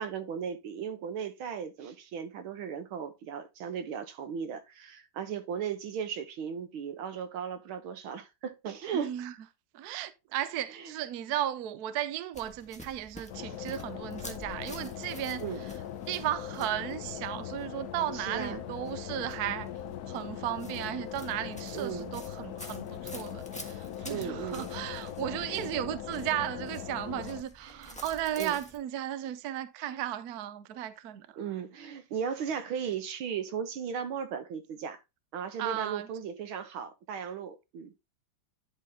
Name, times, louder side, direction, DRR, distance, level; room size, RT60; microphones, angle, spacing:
voice 1, 0.0-9.1 15.4-15.6 18.1-18.6 21.7-22.1 24.1-24.7 25.4-25.6 27.7-28.0 28.4-28.6 31.4-35.0 35.3-37.9, right 7 dB, 80° right, 1.9 m, -36 dB
voice 2, 8.9-9.3 9.7-15.7 16.1-19.7 20.1-31.4 35.6-36.1, right 12 dB, 65° right, 1.0 m, -35 dB
sound 1, 12.3-28.8, equal, 5° left, 1.0 m, -50 dB
sound 2, 13.3-27.4, left 10 dB, 65° left, 1.0 m, -40 dB
11.0 x 4.0 x 3.5 m
omnidirectional pair, 2.2 m